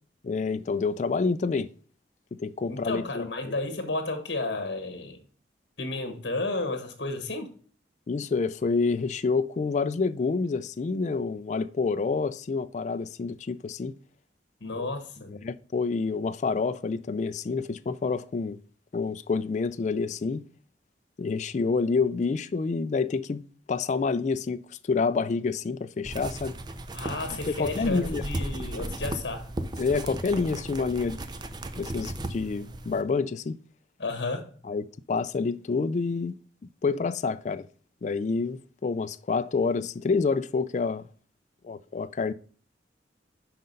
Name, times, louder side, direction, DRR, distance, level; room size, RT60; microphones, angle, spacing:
voice 1, 0.2-1.7 2.4-3.8 8.1-13.9 14.8-14.9 15.3-18.6 18.9-20.4 21.2-23.4 23.7-26.6 27.6-28.2 29.8-31.2 31.8-33.6 34.7-36.3 36.8-37.7 38.0-41.0 41.6-42.3, left 4 dB, 40° left, 0.3 m, -28 dB
voice 2, 2.7-5.2 5.8-7.5 14.6-15.3 26.9-29.5 34.0-34.5, left 2 dB, 75° left, 1.3 m, -32 dB
sound 1, 26.0-33.0, right 1 dB, 25° right, 0.5 m, -36 dB
5.8 x 5.2 x 5.3 m
head